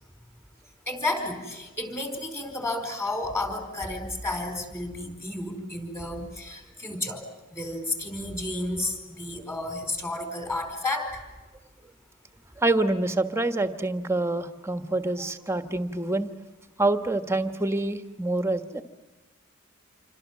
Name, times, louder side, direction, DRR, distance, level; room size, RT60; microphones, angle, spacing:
voice 1, 0.9-7.2 7.5-11.2, left 2 dB, 10° left, 6 dB, 4.7 m, -32 dB
voice 2, 12.6-16.3 16.8-18.8, right 2 dB, 15° right, 8 dB, 1.4 m, -26 dB
28.0 x 25.0 x 7.5 m, 1.2 s
head